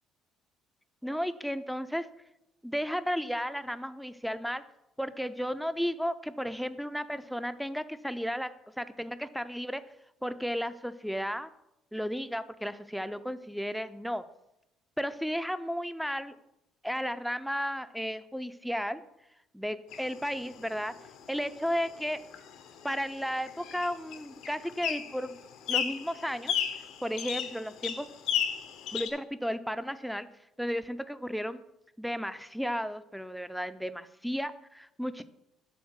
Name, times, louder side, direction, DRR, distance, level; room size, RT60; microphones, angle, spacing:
voice 1, 1.0-2.1 2.6-4.6 5.0-8.5 8.8-9.8 10.2-11.5 11.9-14.2 15.0-16.4 16.8-19.0 19.5-20.9 21.3-22.2 22.8-25.4 25.7-26.5 27.0-28.1 28.9-30.3 30.6-31.6 32.0-35.2, equal, ahead, 12 dB, 0.4 m, -33 dB
sound 1, 19.9-29.1, left 8 dB, 80° left, 0.8 m, -36 dB
7.2 x 3.6 x 6.2 m, 0.85 s
cardioid pair, 95°, 0 cm